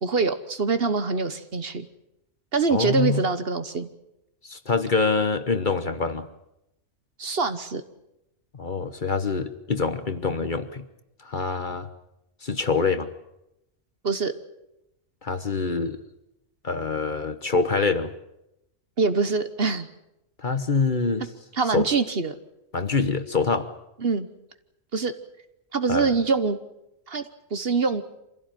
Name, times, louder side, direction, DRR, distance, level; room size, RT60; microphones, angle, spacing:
voice 1, 0.0-1.9 2.5-3.9 7.2-7.8 14.0-14.3 19.0-19.9 21.6-22.3 24.0-24.3 24.9-25.1 25.7-26.6 27.1-27.2 27.5-28.0, right 4 dB, 50° right, 11 dB, 1.3 m, -24 dB
voice 2, 2.7-3.2 4.4-6.3 8.5-10.8 11.2-11.9 12.4-13.1 15.2-16.0 16.6-18.1 20.4-21.3 21.7-21.8 22.7-23.7 25.9-26.1, left 4 dB, 40° left, 10 dB, 1.2 m, -25 dB
26.0 x 16.0 x 9.1 m, 0.87 s
omnidirectional pair, 1.4 m